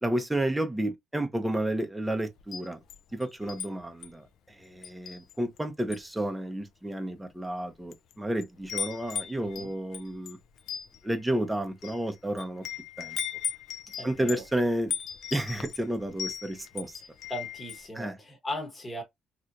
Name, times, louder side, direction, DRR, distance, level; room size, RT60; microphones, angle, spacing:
voice 1, 0.0-2.8 3.1-10.4 11.0-12.6 13.0-13.2 14.0-14.9 15.3-17.0 17.9-18.2, right 1 dB, 5° right, 0.7 m, -31 dB
Wind chime, 2.4-3.7 4.0-4.3 4.8-5.6 5.9-6.2 6.9-7.0 7.7-8.1 8.4-17.9, left 7 dB, 70° left, 0.5 m, -37 dB
voice 2, 9.4-9.7 14.0-14.4 17.3-19.0, left 1 dB, 20° left, 1.1 m, -38 dB
3.2 x 2.8 x 2.5 m
cardioid pair, 135°, 0 cm